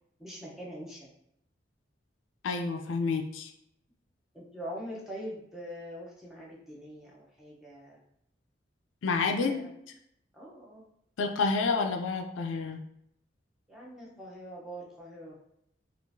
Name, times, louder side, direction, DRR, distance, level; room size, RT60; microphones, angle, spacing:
voice 1, 0.2-1.1 4.3-8.0 9.4-9.7 10.3-10.8 13.7-15.4, equal, ahead, -5 dB, 0.7 m, -43 dB
voice 2, 2.4-3.5 9.0-9.7 11.2-12.8, left 4 dB, 90° left, 4 dB, 0.4 m, -29 dB
3.6 x 2.4 x 2.6 m, 0.75 s
head